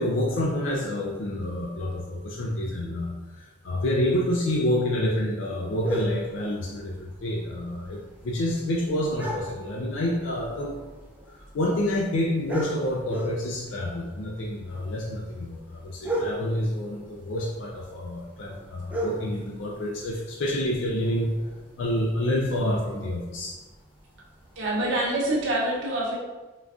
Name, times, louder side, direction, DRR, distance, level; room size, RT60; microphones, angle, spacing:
voice 1, 0.0-10.8 11.3-21.3 21.8-23.6, left 1 dB, 85° left, -2 dB, 0.4 m, -28 dB
sound 1, 5.7-25.5, right 1 dB, 10° right, 0.4 m, -39 dB
voice 2, 24.6-26.2, right 1 dB, 75° right, -3 dB, 0.8 m, -26 dB
3.8 x 2.3 x 2.3 m, 1.2 s
head